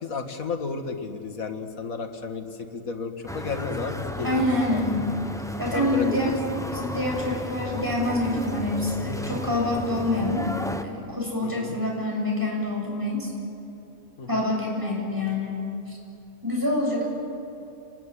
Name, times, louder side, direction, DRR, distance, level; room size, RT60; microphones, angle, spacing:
voice 1, 0.0-4.5 5.7-6.6 10.1-10.4 11.4-11.8 14.2-14.4, left 4 dB, 70° left, 6 dB, 2.3 m, -33 dB
sound 1, 3.3-10.8, left 1 dB, ahead, 1.1 m, -34 dB
voice 2, 4.2-5.1 5.6-6.3 6.7-10.5 10.8-13.3 14.3-16.0 16.4-17.0, left 1 dB, 15° right, -2 dB, 7.8 m, -26 dB
29.0 x 20.5 x 10.0 m, 2.9 s
omnidirectional pair, 1.5 m